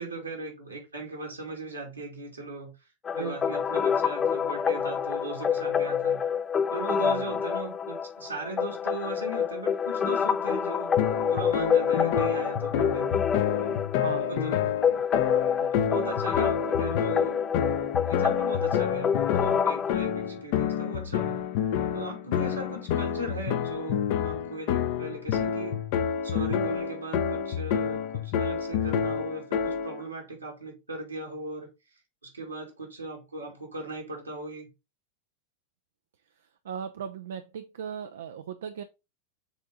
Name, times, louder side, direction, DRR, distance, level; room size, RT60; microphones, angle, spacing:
voice 1, 0.0-2.7 3.1-6.2 6.7-10.9 11.3-13.3 13.6-13.7 14.2-14.7 15.7-17.4 17.9-21.4 21.9-25.8 26.2-31.7 32.2-34.7, right 2 dB, 80° right, 2.6 m, -38 dB
sound 1, 3.1-19.9, left 7 dB, 20° left, 0.3 m, -27 dB
voice 2, 3.1-3.8 7.0-7.4 14.0-15.0 15.6-15.9 22.2-22.6 36.3-38.8, right 8 dB, 60° right, 0.5 m, -39 dB
sound 2, 11.0-30.0, left 8 dB, 50° left, 0.7 m, -29 dB
7.1 x 3.6 x 3.7 m
figure-of-eight pair, 90°, 0 cm